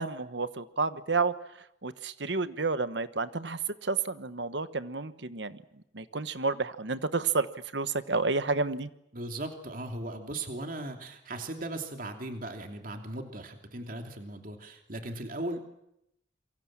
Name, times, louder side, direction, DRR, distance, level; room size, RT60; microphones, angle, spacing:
voice 1, 0.0-1.3 1.8-5.6 5.9-7.5 7.7-8.9, right 4 dB, 70° right, 13 dB, 1.2 m, -30 dB
voice 2, 9.1-15.6, right 2 dB, 45° right, 4 dB, 2.9 m, -38 dB
27.5 x 24.0 x 7.5 m, 0.80 s
head